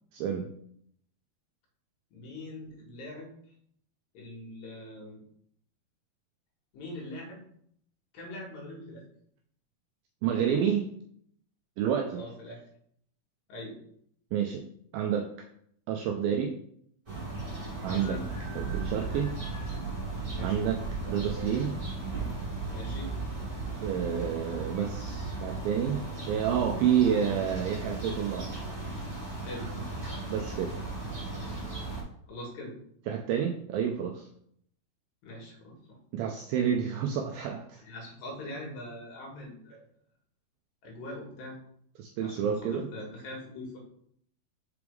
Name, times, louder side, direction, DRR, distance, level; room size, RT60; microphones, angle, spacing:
voice 1, 0.1-0.5 10.2-10.9 11.8-12.3 14.3-14.6 14.9-15.3 15.9-16.6 17.8-18.2 18.6-19.3 20.4-20.8 21.1-21.7 23.8-28.5 29.6-29.7 30.3-30.7 33.1-34.3 36.1-37.8 42.0-42.9, right 8 dB, 85° right, 2 dB, 2.0 m, -29 dB
voice 2, 2.1-3.3 4.1-5.2 6.7-7.4 8.1-9.0 12.1-12.6 13.5-13.8 17.8-18.3 20.3-20.7 22.7-23.1 29.4-29.7 32.3-32.8 35.2-36.0 37.8-39.8 40.8-41.6 42.2-43.8, left 1 dB, 65° left, -2 dB, 3.1 m, -42 dB
sound 1, 17.1-32.0, right 3 dB, 20° right, 1.4 m, -36 dB
6.1 x 4.8 x 3.4 m, 0.68 s
omnidirectional pair, 4.7 m